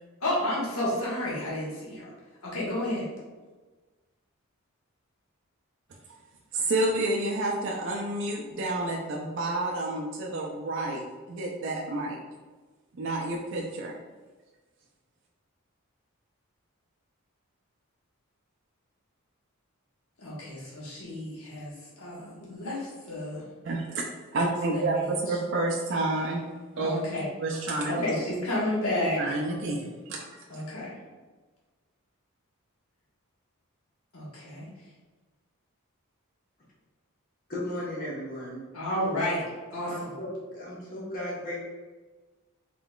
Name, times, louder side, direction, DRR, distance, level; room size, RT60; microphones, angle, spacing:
voice 1, 0.2-2.1 2.4-3.1 20.2-23.4 24.7-25.1 26.7-27.2 27.9-29.3 30.5-30.9 34.1-34.7 38.7-39.4 39.7-40.1, left 1 dB, 75° left, -7 dB, 1.4 m, -31 dB
voice 2, 6.5-11.0 11.3-12.2 13.0-13.9 23.6-24.1 24.3-26.4 26.8-27.0 27.4-28.0 29.2-30.4, right 2 dB, 60° right, -2 dB, 0.4 m, -29 dB
voice 3, 37.5-38.6 39.9-41.6, left 1 dB, 40° left, -5 dB, 1.3 m, -35 dB
4.0 x 3.7 x 2.4 m, 1.3 s
head